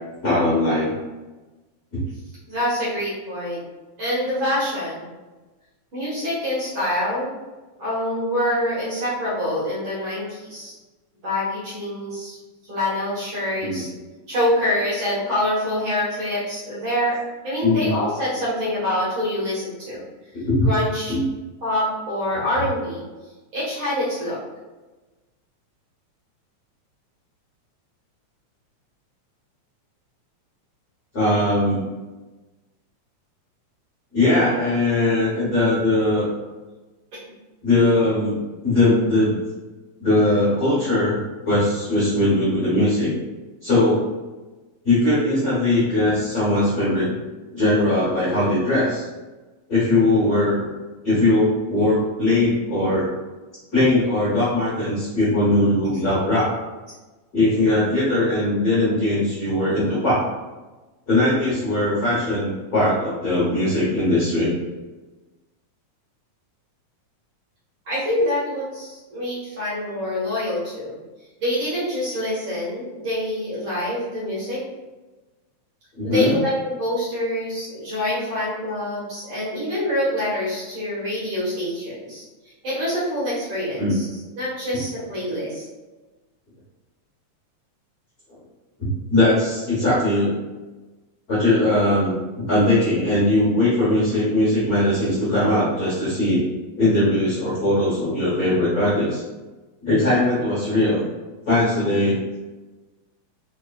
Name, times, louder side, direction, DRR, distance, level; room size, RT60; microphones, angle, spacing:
voice 1, 0.2-0.9 1.9-2.0 13.6-13.8 17.6-17.9 20.3-20.7 21.1-21.3 31.1-31.8 34.1-36.3 37.6-38.4 38.6-39.4 40.0-43.1 43.6-44.0 44.8-47.1 47.5-49.1 49.7-50.7 51.0-53.0 53.7-56.5 57.3-60.3 61.1-64.5 76.0-76.3 83.8-83.9 89.1-90.4 91.3-92.2 92.5-96.4 96.8-99.2 99.8-101.0 101.5-102.2, left 1 dB, 85° left, -9 dB, 0.8 m, -20 dB
voice 2, 2.5-3.6 4.0-5.1 5.9-7.3 7.8-10.7 11.2-12.4 12.7-13.9 14.3-17.2 17.4-20.0 20.6-21.1 21.6-23.0 23.5-24.4 67.8-71.0 71.4-74.6 76.0-82.2 82.6-84.0 84.4-85.6, left 1 dB, 55° right, -8 dB, 1.6 m, -25 dB
4.3 x 3.1 x 2.3 m, 1.2 s
omnidirectional pair, 3.5 m